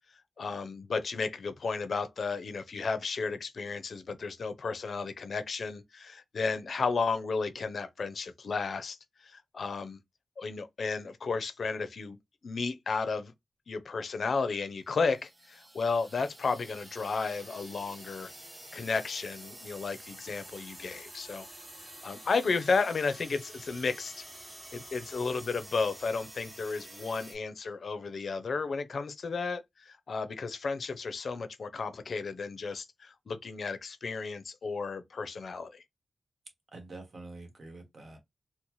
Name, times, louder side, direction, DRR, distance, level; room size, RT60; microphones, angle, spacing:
voice 1, 0.4-10.0 10.4-12.2 12.4-13.3 13.7-18.3 18.7-21.5 22.0-24.2 24.7-35.8, left 4 dB, 70° left, 0.5 m, -33 dB
sound 1, 14.9-27.3, right 1 dB, 35° right, 2.1 m, -49 dB
voice 2, 36.7-38.2, right 2 dB, 60° right, 1.2 m, -46 dB
4.0 x 2.1 x 3.0 m
wide cardioid pair, 85°, 0 cm